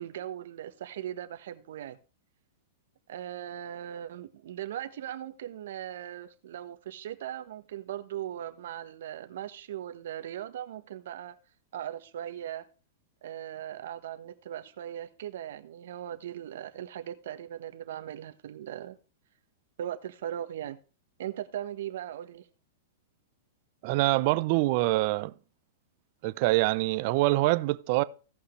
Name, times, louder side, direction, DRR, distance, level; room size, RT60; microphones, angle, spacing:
voice 1, 0.0-2.0 3.1-11.3 11.7-12.6 13.2-19.0 19.8-20.8 21.2-22.5, right 11 dB, 70° right, 1.2 m, -39 dB
voice 2, 23.8-25.3 26.2-28.0, right 20 dB, 50° right, 0.6 m, -25 dB
16.5 x 5.6 x 3.2 m
hypercardioid pair, 140°, 0 cm